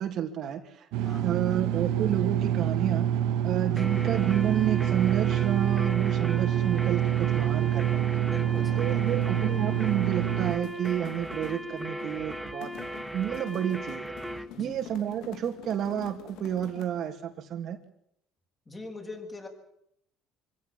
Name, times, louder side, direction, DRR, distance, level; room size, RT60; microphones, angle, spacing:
voice 1, 0.0-0.9 1.2-3.1 3.4-8.0 8.8-14.2 14.6-17.8, right 10 dB, 55° right, 4 dB, 2.8 m, -30 dB
sound 1, 0.9-10.6, right 10 dB, 80° right, 1.6 m, -26 dB
voice 2, 1.0-1.4 3.7-3.9 8.2-9.4 14.5-14.8 18.7-19.5, left 2 dB, 20° left, 2 dB, 6.6 m, -43 dB
sound 2, 3.8-14.5, equal, 5° right, 1.3 m, -38 dB
sound 3, 8.4-17.1, left 11 dB, 75° left, 2.8 m, -47 dB
25.5 x 16.0 x 8.8 m, 0.73 s
cardioid pair, 125°, 0 cm